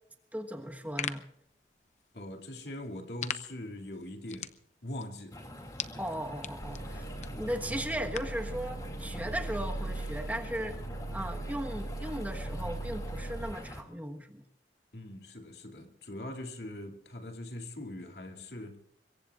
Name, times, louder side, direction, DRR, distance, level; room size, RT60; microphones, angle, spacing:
voice 1, 0.3-1.2 6.0-7.1 7.3-10.7 11.1-14.4, equal, 10° right, 1.3 m, -37 dB
sound 1, 0.6-8.5, left 8 dB, 40° left, 0.8 m, -44 dB
voice 2, 2.1-4.6 4.8-5.5 6.8-7.4 14.9-18.8, left 1 dB, 70° left, 2.6 m, -42 dB
sound 2, 5.3-13.8, left 1 dB, 20° left, 2.5 m, -45 dB
sound 3, 6.6-13.5, right 2 dB, 85° left, 5.1 m, -39 dB
25.0 x 22.5 x 2.5 m
head